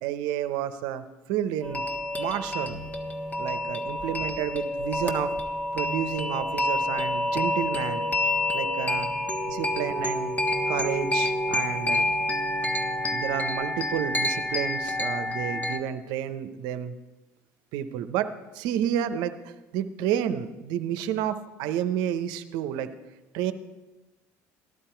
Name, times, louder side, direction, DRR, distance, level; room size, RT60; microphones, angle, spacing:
voice 1, 0.0-1.8 2.2-2.8 3.4-5.3 5.7-8.0 8.5-9.1 9.5-10.4 10.7-12.1 13.1-16.9 17.7-18.3 18.5-19.3 19.7-22.9 23.3-23.5, right 10 dB, 75° right, 11 dB, 0.8 m, -30 dB
sound 1, 1.6-15.8, left 1 dB, 20° left, 1.5 m, -28 dB
15.0 x 11.5 x 4.5 m, 1.1 s
hypercardioid pair, 70°, 7 cm